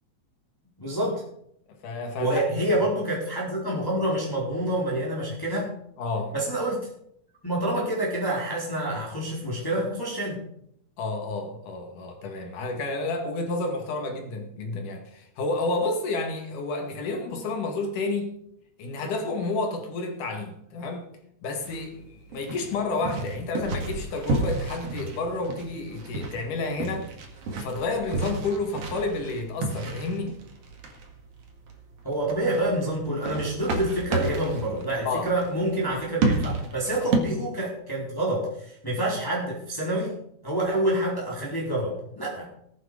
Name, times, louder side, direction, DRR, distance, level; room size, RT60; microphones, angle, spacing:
voice 1, 0.8-1.2 2.2-5.7 6.3-6.9 7.4-10.4 32.0-40.1 40.4-42.5, right 1 dB, 5° left, 4.1 m, -27 dB
voice 2, 1.8-2.7 6.0-6.3 11.0-18.3 18.8-21.1 21.4-27.1 27.5-30.4 35.1-35.3, left 3 dB, 85° left, 3.5 m, -30 dB
sound 1, 21.6-37.2, right 3 dB, 55° right, 2.8 m, -32 dB
18.0 x 9.4 x 5.1 m
omnidirectional pair, 3.5 m